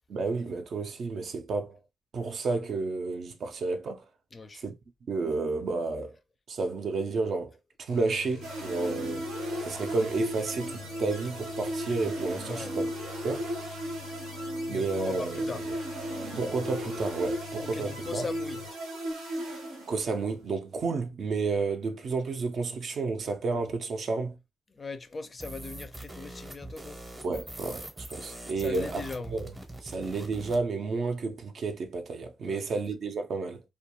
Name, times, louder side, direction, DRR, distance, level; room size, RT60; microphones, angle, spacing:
voice 1, 0.1-1.8 2.1-4.0 4.6-4.7 5.1-6.2 6.5-9.3 9.6-12.9 13.2-13.5 14.7-15.7 16.4-18.3 19.9-24.4 27.2-29.0 29.3-29.5 29.8-33.6, right 3 dB, 55° right, 0.4 m, -31 dB
voice 2, 4.3-4.6 12.5-12.7 14.7-15.6 17.6-18.6 24.7-27.0 28.6-29.5 32.5-32.7, left 4 dB, 30° left, 0.4 m, -39 dB
sound 1, 7.9-18.7, left 9 dB, 90° left, 0.5 m, -47 dB
sound 2, 8.4-20.3, right 1 dB, 90° right, 0.8 m, -35 dB
sound 3, 25.4-30.6, right 1 dB, 15° right, 0.7 m, -43 dB
2.3 x 2.2 x 2.9 m
cardioid pair, 90°, 0 cm